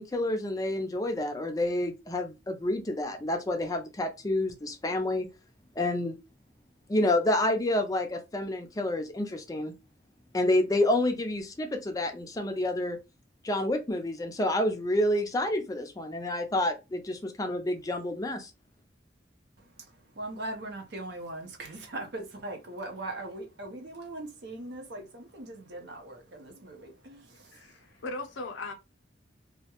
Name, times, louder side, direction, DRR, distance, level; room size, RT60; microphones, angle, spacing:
voice 1, 0.0-5.3 5.8-6.2 6.9-9.7 10.3-13.0 13.4-18.5, left 1 dB, 20° left, 0.4 m, -29 dB
voice 2, 19.6-28.0, right 2 dB, 65° right, 0.5 m, -40 dB
voice 3, 27.5-28.7, left 2 dB, 90° left, 0.5 m, -38 dB
2.3 x 2.0 x 2.8 m
head